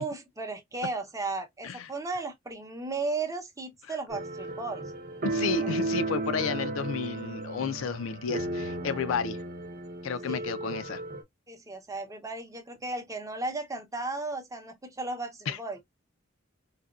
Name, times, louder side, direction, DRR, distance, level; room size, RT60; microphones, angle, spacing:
voice 1, 0.0-4.9 5.6-5.8 10.3-10.5 11.5-15.8, right 3 dB, 15° right, 0.7 m, -35 dB
sound 1, 4.1-11.2, right 2 dB, 45° right, 0.8 m, -34 dB
voice 2, 5.2-9.4 10.0-11.0 15.5-15.6, left 6 dB, 70° left, 0.4 m, -32 dB
4.0 x 2.2 x 2.3 m
head